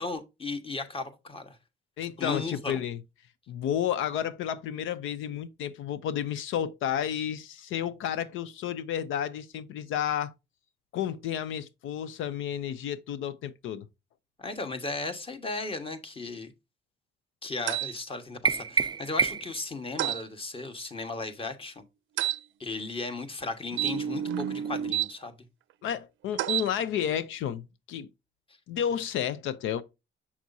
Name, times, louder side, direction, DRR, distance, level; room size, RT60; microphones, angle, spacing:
voice 1, 0.0-1.6 2.2-2.8 14.4-16.5 17.4-21.8 22.6-25.4, left 3 dB, 30° left, 1.4 m, -36 dB
voice 2, 2.0-3.0 3.5-10.3 10.9-13.9 25.8-28.1 28.7-29.8, left 9 dB, 85° left, 0.5 m, -31 dB
sound 1, 17.7-17.9 20.0-20.2 22.2-22.4 23.7-25.1 26.3-26.7, right 11 dB, 75° right, 0.5 m, -29 dB
sound 2, 18.5-19.7, right 5 dB, 20° right, 0.4 m, -27 dB
7.2 x 6.0 x 2.7 m
cardioid pair, 90°, 20 cm